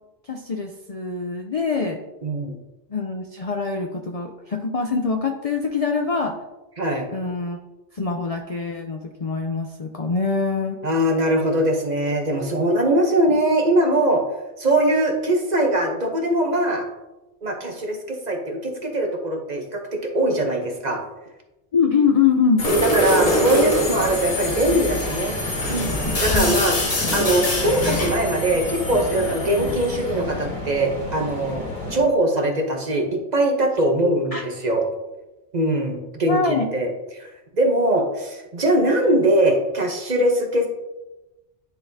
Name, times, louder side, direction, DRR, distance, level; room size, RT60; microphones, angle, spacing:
voice 1, 0.3-2.0 2.9-6.3 7.1-7.6 7.9-10.8 21.7-22.6 26.3-26.5 34.3-34.4 36.2-36.7, left 5 dB, 50° left, 3 dB, 0.4 m, -23 dB
voice 2, 2.2-2.6 6.8-7.1 10.8-14.2 14.6-16.8 17.4-21.0 22.7-25.4 25.7-25.9 26.2-34.8 35.5-37.3 37.5-40.7, right 1 dB, 40° right, 2 dB, 0.9 m, -21 dB
Subway metro underground, 22.6-32.0, left 2 dB, 90° left, 1.9 m, -29 dB
sound 1, 22.6-28.2, left 1 dB, 35° left, 1.0 m, -24 dB
10.5 x 4.1 x 2.7 m, 1.0 s
omnidirectional pair, 1.2 m